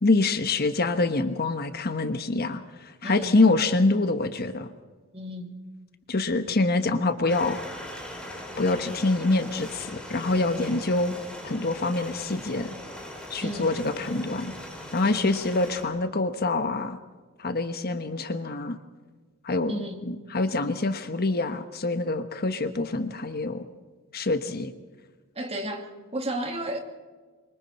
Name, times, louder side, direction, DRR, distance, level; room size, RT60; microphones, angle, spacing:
voice 1, 0.0-4.7 6.1-7.6 8.6-11.1 11.4-12.7 13.3-14.5 14.9-17.0 17.4-18.8 19.4-19.7 20.1-23.7 24.1-24.7, left 2 dB, 45° left, 1.2 m, -25 dB
voice 2, 3.0-3.3 5.1-5.6 13.4-13.7 15.0-15.4 19.7-20.1 25.3-26.8, right 1 dB, 25° right, 2.6 m, -33 dB
sound 1, 7.3-15.8, equal, 5° left, 6.0 m, -40 dB
27.0 x 24.0 x 4.3 m
head